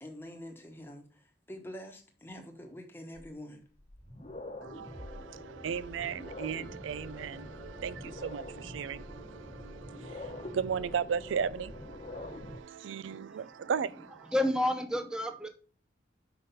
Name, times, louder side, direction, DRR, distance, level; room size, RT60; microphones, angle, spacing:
voice 1, 0.0-3.6, equal, 10° left, 1.1 m, -46 dB
sound 1, 3.2-3.3 3.8-12.6, left 1 dB, 30° left, 1.0 m, -45 dB
voice 2, 4.6-14.3, right 7 dB, 85° right, 0.4 m, -36 dB
voice 3, 13.1-13.4 14.3-15.5, left 1 dB, 5° right, 0.6 m, -30 dB
5.8 x 5.0 x 5.6 m
head